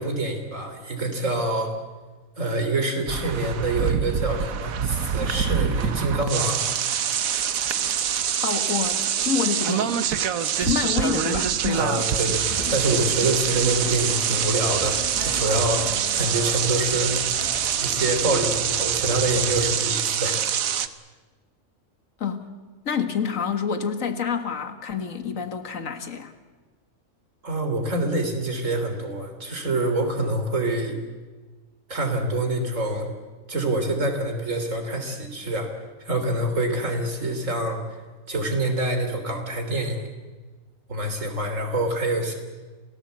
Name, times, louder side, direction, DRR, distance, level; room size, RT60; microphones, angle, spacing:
voice 1, 0.0-1.7 2.4-6.6 11.7-17.2 17.8-20.5 20.8-20.9 27.4-31.0 31.9-33.1 33.5-35.7 36.1-37.8 38.3-40.1 40.9-42.3, right 2 dB, 70° right, 5 dB, 3.6 m, -26 dB
sound 1, 3.1-20.9, right 8 dB, 85° right, 1.4 m, -25 dB
voice 2, 8.4-10.1 10.6-12.1 12.6-12.8 13.2-13.3 22.2-22.5 22.9-26.3, left 6 dB, 75° left, 8 dB, 2.0 m, -28 dB
sound 2, 12.3-19.8, right 2 dB, 25° right, 2.1 m, -37 dB
28.0 x 18.0 x 8.2 m, 1.3 s
omnidirectional pair, 1.4 m